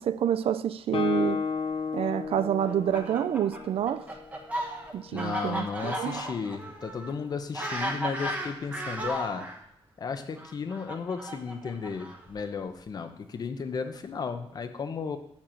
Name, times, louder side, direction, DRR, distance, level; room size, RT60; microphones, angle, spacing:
voice 1, 0.0-1.4 1.9-4.1 4.9-6.2, right 10 dB, 70° right, 0.4 m, -28 dB
Guitar, 0.9-4.6, left 5 dB, 70° left, 1.2 m, -33 dB
Fowl, 2.6-9.6 10.4-12.4, right 1 dB, 15° right, 1.3 m, -35 dB
voice 2, 5.1-9.5 10.0-15.2, left 5 dB, 40° left, 0.8 m, -34 dB
7.4 x 6.8 x 7.6 m
wide cardioid pair, 175°, 10 cm